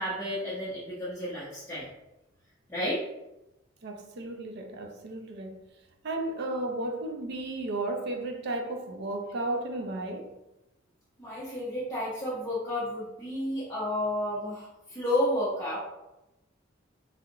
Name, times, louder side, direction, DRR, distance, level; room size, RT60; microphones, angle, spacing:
voice 1, 0.0-1.8 2.7-3.0 11.2-15.8, left 1 dB, 15° left, 0.8 m, -31 dB
voice 2, 3.8-5.6 6.0-10.3, right 2 dB, 60° right, 0.4 m, -34 dB
3.4 x 2.4 x 2.8 m
head